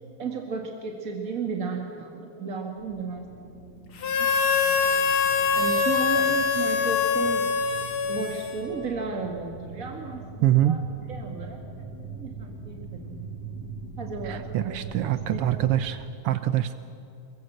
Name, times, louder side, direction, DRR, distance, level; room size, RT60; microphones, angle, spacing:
voice 1, 0.2-3.3 4.2-4.3 5.6-7.5 8.1-10.8 11.1-11.9 12.1-13.3 14.0-15.5, right 5 dB, 35° right, 2 dB, 1.7 m, -34 dB
sound 1, 2.8-15.9, right 3 dB, 90° left, 5.0 m, -41 dB
Harmonica, 4.0-8.9, left 5 dB, 50° left, 2.2 m, -24 dB
voice 2, 10.4-10.8 14.2-16.7, right 12 dB, 80° right, 11 dB, 1.3 m, -24 dB
28.0 x 22.0 x 7.8 m, 2.7 s
omnidirectional pair, 3.5 m